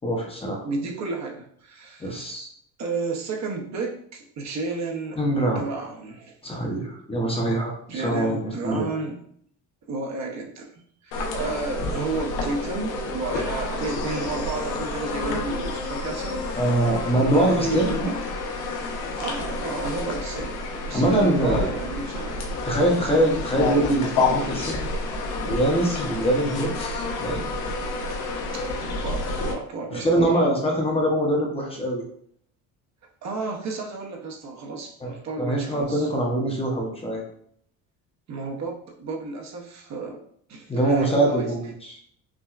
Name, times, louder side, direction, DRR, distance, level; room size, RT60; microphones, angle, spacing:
voice 1, 0.0-0.6 2.0-2.5 5.2-5.6 6.4-8.3 8.6-8.9 16.6-18.1 20.9-21.7 22.6-24.8 25.4-27.4 29.9-32.0 35.0-37.2 40.7-42.0, right 1 dB, 15° left, -1 dB, 0.8 m, -23 dB
voice 2, 0.6-2.3 2.8-5.2 5.5-6.3 7.9-9.2 9.9-10.7 11.0-16.6 17.3-18.2 19.2-22.4 28.5-28.7 29.0-30.8 33.2-36.1 38.3-40.2 40.5-41.5, right 3 dB, 45° right, 0 dB, 0.8 m, -32 dB
sound 1, 11.1-29.5, left 2 dB, 75° left, 0.9 m, -29 dB
5.9 x 2.1 x 2.4 m, 0.64 s
cardioid pair, 115°, 37 cm